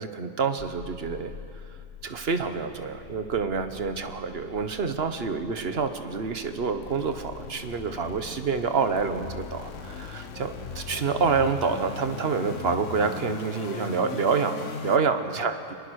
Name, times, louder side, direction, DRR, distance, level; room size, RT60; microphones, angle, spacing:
voice 1, 0.0-1.3 2.0-15.7, right 5 dB, 55° right, 9 dB, 1.4 m, -27 dB
sound 1, 0.6-15.0, left 5 dB, 90° left, 1.4 m, -40 dB
23.5 x 20.5 x 6.4 m, 2.4 s
omnidirectional pair, 1.2 m